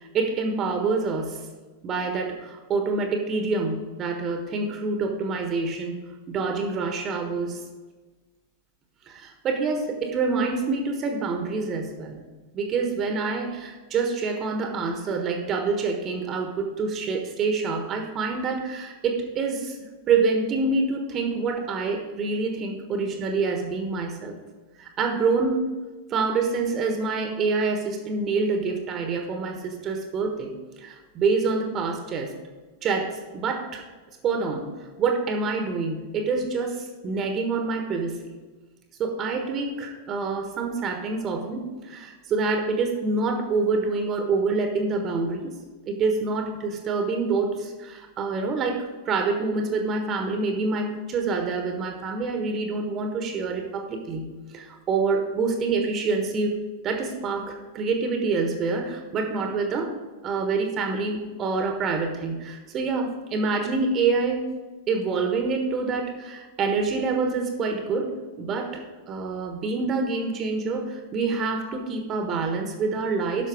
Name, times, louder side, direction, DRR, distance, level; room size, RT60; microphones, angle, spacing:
voice 1, 0.0-1.4 1.8-5.9 6.3-7.6 9.1-12.2 12.5-19.8 20.1-24.3 24.8-25.6 26.1-30.5 30.8-32.3 32.8-33.8 34.2-34.7 35.0-38.3 39.0-45.6 45.8-56.6 56.8-59.9 60.2-64.5 64.9-73.5, right 4 dB, 30° right, 4 dB, 1.3 m, -26 dB
11.0 x 6.5 x 4.9 m, 1.3 s
figure-of-eight pair, 90°, 0 cm